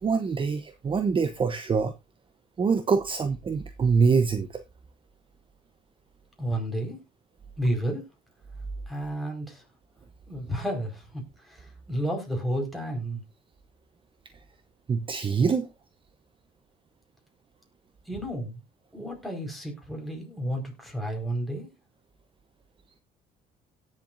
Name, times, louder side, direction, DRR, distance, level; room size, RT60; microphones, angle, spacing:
voice 1, 0.0-1.9 2.6-4.6 14.9-15.7, right 5 dB, 30° right, 0.8 m, -24 dB
voice 2, 6.4-7.0 7.6-8.0 8.9-9.6 10.3-13.2 18.1-18.6 18.9-21.7, right 1 dB, ahead, 4.8 m, -31 dB
17.5 x 7.6 x 2.6 m
cardioid pair, 110°, 17 cm